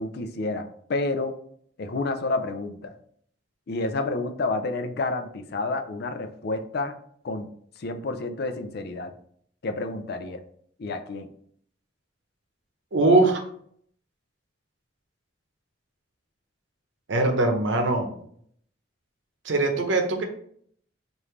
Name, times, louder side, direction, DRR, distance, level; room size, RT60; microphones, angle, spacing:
voice 1, 0.0-1.4 1.8-2.9 3.7-6.9 7.2-7.5 7.8-9.1 9.6-10.4 10.8-11.3, left 2 dB, 60° left, 8 dB, 0.4 m, -29 dB
voice 2, 12.9-13.4 17.1-18.1 19.4-20.2, right 2 dB, 85° right, 4 dB, 0.8 m, -21 dB
4.9 x 2.6 x 3.1 m, 0.63 s
head